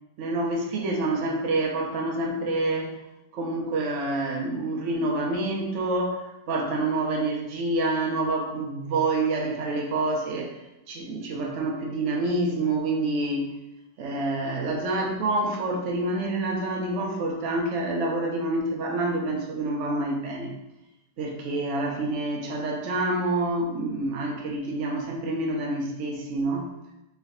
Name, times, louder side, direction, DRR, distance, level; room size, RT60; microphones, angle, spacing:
voice 1, 0.2-3.0 3.3-10.6 10.9-13.4 14.0-20.5 21.2-26.7, right 2 dB, 60° right, 1 dB, 0.8 m, -27 dB
4.3 x 3.3 x 2.6 m, 0.91 s
omnidirectional pair, 1.7 m